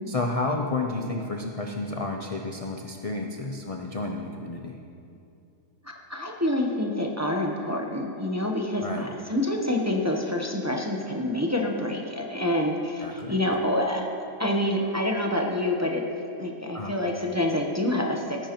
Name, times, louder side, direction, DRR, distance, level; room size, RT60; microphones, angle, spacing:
voice 1, 0.1-4.8 8.8-9.1 13.0-13.4 16.7-16.9, left 2 dB, 55° left, 1 dB, 0.3 m, -31 dB
voice 2, 6.1-14.1 14.4-16.0 16.4-18.4, left 1 dB, 15° right, 0 dB, 0.7 m, -27 dB
18.0 x 10.0 x 3.0 m, 2.6 s
omnidirectional pair, 1.6 m